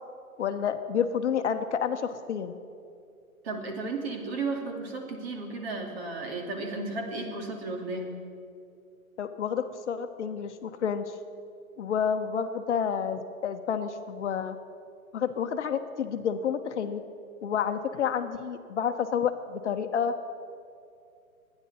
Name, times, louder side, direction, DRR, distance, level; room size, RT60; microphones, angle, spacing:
voice 1, 0.4-2.5 9.2-11.1 11.8-14.6 15.1-17.0 17.4-20.1, left 7 dB, 55° left, 8 dB, 0.9 m, -29 dB
voice 2, 3.4-8.1, right 3 dB, 45° right, 2 dB, 2.5 m, -34 dB
24.5 x 9.9 x 4.2 m, 2.4 s
hypercardioid pair, 155°, 42 cm